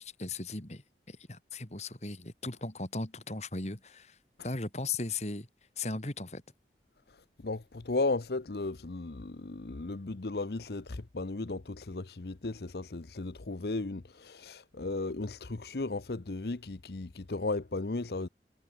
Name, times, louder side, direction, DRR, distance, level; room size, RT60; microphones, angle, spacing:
voice 1, 0.0-4.2 4.4-5.5 5.8-6.4, left 3 dB, 40° left, 2.7 m, -37 dB
voice 2, 7.1-18.3, left 3 dB, 65° left, 0.8 m, -35 dB
head